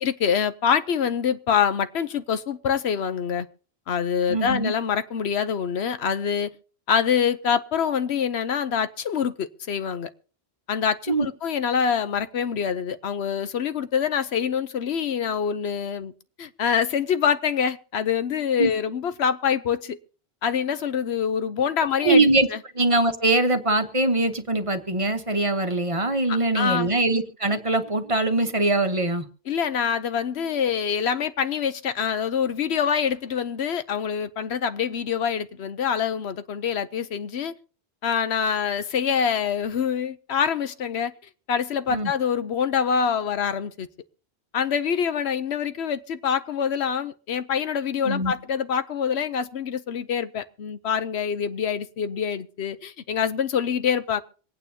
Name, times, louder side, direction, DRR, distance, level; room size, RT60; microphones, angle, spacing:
voice 1, 0.0-3.5 3.9-6.5 6.9-10.1 10.7-16.1 16.4-20.0 20.4-22.2 22.5-22.6 26.3-26.9 29.5-37.5 38.0-41.1 41.5-43.9 44.5-54.2, left 7 dB, 85° left, 1.1 m, -25 dB
voice 2, 4.3-4.7 11.1-11.3 18.6-18.7 22.0-22.5 22.7-29.3 41.9-42.1 48.0-48.3, right 2 dB, 35° right, 1.1 m, -22 dB
26.0 x 9.1 x 2.8 m
omnidirectional pair, 1.1 m